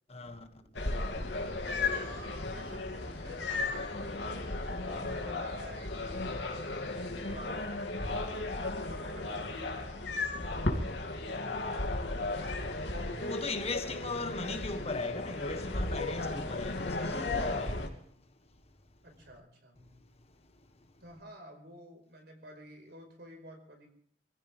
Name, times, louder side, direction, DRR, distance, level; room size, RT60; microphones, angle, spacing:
voice 1, 0.1-0.8 5.0-5.2 11.3-11.7 13.2-18.1, left 3 dB, 35° left, 1.5 m, -38 dB
sound 1, 0.7-17.9, left 2 dB, 90° left, 2.7 m, -35 dB
voice 2, 1.1-4.2 4.8-6.4 7.0-10.8 19.0-19.9 21.0-23.9, right 1 dB, 65° right, 5.2 m, -52 dB
25.5 x 15.5 x 3.6 m
head